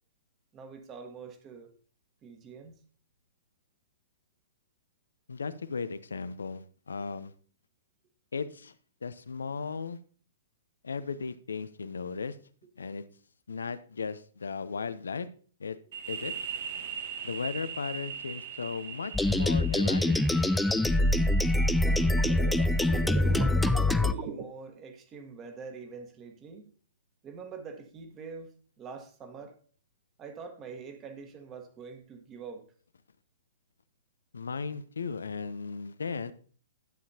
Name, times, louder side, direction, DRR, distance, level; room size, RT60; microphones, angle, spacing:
voice 1, 0.5-1.7 2.2-2.8 21.8-22.6 23.2-26.7 27.2-28.5 28.8-29.6 30.2-32.6, right 5 dB, 25° right, 1.5 m, -45 dB
voice 2, 5.3-7.3 8.3-8.7 9.0-10.0 10.8-12.4 12.8-13.0 13.5-15.3 15.6-15.8 16.1-16.3 17.2-20.5 34.3-36.3, left 5 dB, 85° left, 0.7 m, -36 dB
sound 1, 15.9-23.4, right 7 dB, 60° right, 0.9 m, -41 dB
sound 2, 19.1-24.1, left 2 dB, 5° left, 0.4 m, -24 dB
sound 3, 22.2-24.4, right 7 dB, 40° right, 1.1 m, -37 dB
11.5 x 7.5 x 2.8 m
hypercardioid pair, 130°, 0 cm